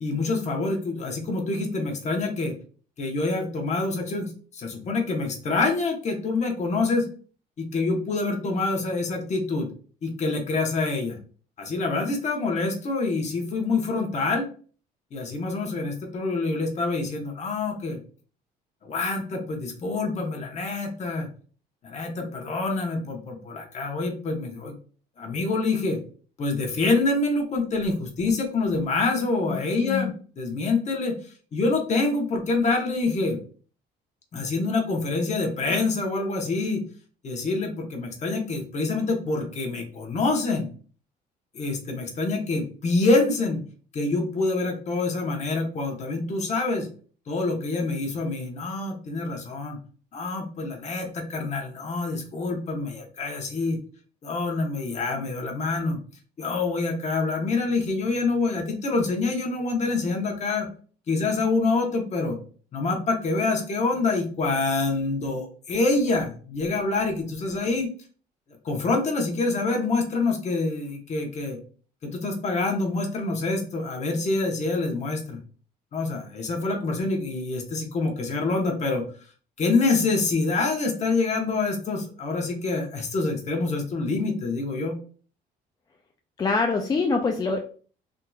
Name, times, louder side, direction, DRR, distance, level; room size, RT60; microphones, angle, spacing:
voice 1, 0.0-2.6 3.0-7.1 7.6-9.7 10.0-11.2 11.6-14.5 15.1-18.0 18.8-21.3 21.8-24.7 25.2-26.0 26.4-31.2 31.5-33.4 34.3-36.8 37.2-40.7 41.5-43.6 43.9-46.9 47.3-49.8 50.1-53.8 54.2-56.0 56.4-60.7 61.1-62.4 62.7-67.9 68.6-71.6 72.0-75.4 75.9-79.0 79.6-85.0, left 3 dB, 40° left, 2 dB, 1.0 m, -26 dB
voice 2, 29.7-30.1 86.4-87.6, left 4 dB, 25° left, 3 dB, 0.4 m, -24 dB
3.6 x 2.8 x 2.3 m, 0.41 s
cardioid pair, 110°, 17 cm